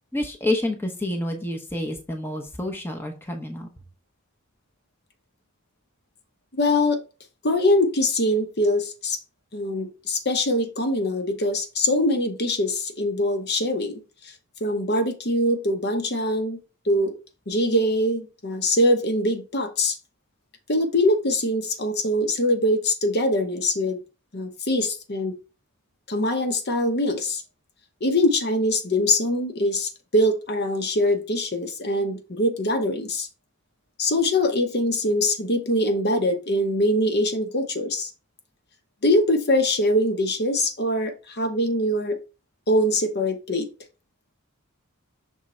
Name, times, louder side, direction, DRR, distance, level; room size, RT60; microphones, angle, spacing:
voice 1, 0.1-3.7, left 1 dB, 10° left, 0.8 m, -28 dB
voice 2, 6.6-7.0 7.4-9.2 9.5-14.3 14.6-16.6 16.8-17.2 17.5-20.0 20.7-24.0 24.3-25.4 26.1-27.4 28.0-33.3 34.0-38.1 39.0-42.2 42.7-43.7, left 1 dB, 50° left, 0.9 m, -23 dB
6.2 x 3.6 x 4.3 m
head